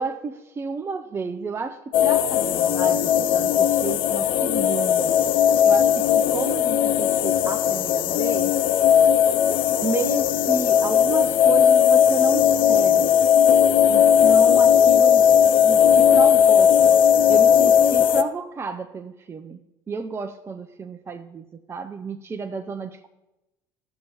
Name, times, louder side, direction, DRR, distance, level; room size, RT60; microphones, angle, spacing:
voice 1, 0.0-5.4 5.6-8.5 9.8-13.1 13.8-15.3 15.6-17.0 17.3-19.6 19.9-23.1, right 4 dB, 25° right, 7 dB, 0.6 m, -31 dB
sound 1, 1.9-18.2, left 8 dB, 50° left, 0.5 m, -17 dB
15.5 x 6.7 x 2.9 m, 0.98 s
figure-of-eight pair, 65°, 11 cm